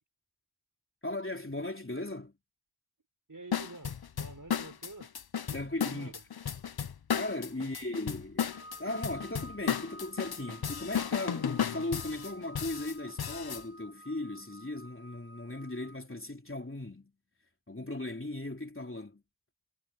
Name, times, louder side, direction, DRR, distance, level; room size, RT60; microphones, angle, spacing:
voice 1, 1.0-2.3 5.5-6.1 7.1-8.5 8.8-17.1 17.7-19.2, left 2 dB, 25° left, 3.5 m, -37 dB
voice 2, 3.3-5.1 5.5-6.2 7.6-7.7, right 2 dB, 40° right, 5.3 m, -49 dB
sound 1, 3.5-13.6, left 8 dB, 55° left, 0.8 m, -34 dB
sound 2, 8.5-16.0, equal, 10° right, 4.3 m, -52 dB
wide cardioid pair, 65°, 47 cm